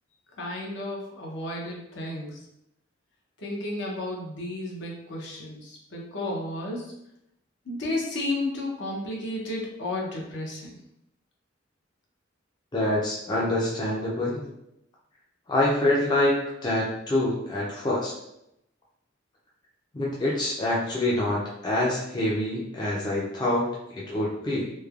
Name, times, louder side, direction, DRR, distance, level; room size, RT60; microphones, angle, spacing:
voice 1, 0.4-2.4 3.4-6.9 7.6-10.8, left 1 dB, 65° left, -2 dB, 0.7 m, -32 dB
voice 2, 12.7-14.5 15.5-18.1 19.9-24.7, left 1 dB, 20° left, -5 dB, 0.4 m, -26 dB
3.1 x 2.1 x 2.3 m, 0.80 s
head